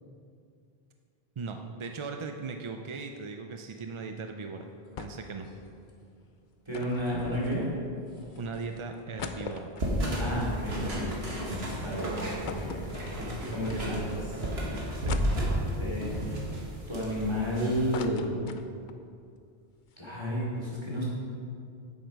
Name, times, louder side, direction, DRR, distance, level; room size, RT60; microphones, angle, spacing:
voice 1, 1.4-4.7 5.0-5.5 8.4-9.7 15.0-15.2, right 4 dB, 50° right, 5 dB, 0.4 m, -38 dB
sound 1, 4.5-14.1, left 1 dB, 90° left, 1.9 m, -50 dB
sound 2, 5.0-5.4 5.7-5.8 6.7-8.0 8.5-8.6 8.9-11.4 11.8-11.9 12.5-13.6 14.1-14.2 15.1-15.9 16.5-17.4 17.7-19.0 19.4-19.5 19.7-20.0, left 6 dB, 55° left, 0.7 m, -42 dB
voice 2, 6.7-7.7 10.2-11.1 11.4-12.2 12.5-14.4 14.7-14.8 15.8-16.2 16.9-18.3 20.0-21.0, equal, 25° right, -6 dB, 2.7 m, -32 dB
sound 3, 9.8-18.0, equal, 75° right, 1.9 m, -33 dB
9.2 x 7.8 x 5.2 m, 2.4 s
omnidirectional pair, 1.1 m